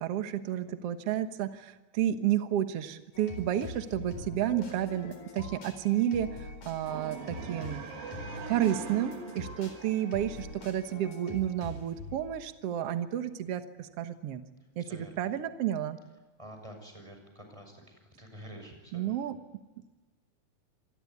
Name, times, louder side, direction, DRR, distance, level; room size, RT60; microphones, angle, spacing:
voice 1, 0.0-7.8 8.5-14.4 14.8-16.0 18.9-19.4, right 11 dB, 80° right, 9 dB, 1.3 m, -31 dB
sound 1, 3.1-12.4, left 2 dB, 45° left, 5.5 m, -44 dB
sound 2, 6.8-10.9, right 5 dB, 60° right, 4.1 m, -43 dB
voice 2, 14.8-15.1 16.4-19.1, equal, 5° right, 4 dB, 6.3 m, -48 dB
26.5 x 21.0 x 9.6 m, 1.2 s
omnidirectional pair, 4.8 m